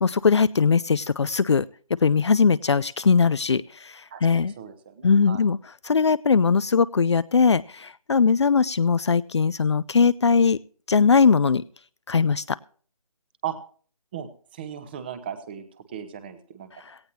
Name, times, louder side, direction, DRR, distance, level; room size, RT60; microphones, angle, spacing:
voice 1, 0.0-1.7 2.0-4.5 5.0-5.6 5.8-10.6 10.9-11.6 12.1-12.6 16.8-17.0, left 5 dB, 50° left, 17 dB, 0.5 m, -20 dB
voice 2, 4.1-5.4 13.4-13.6 14.1-16.7, right 9 dB, 15° right, 11 dB, 1.0 m, -37 dB
17.5 x 15.5 x 2.7 m, 0.43 s
figure-of-eight pair, 165°, 19 cm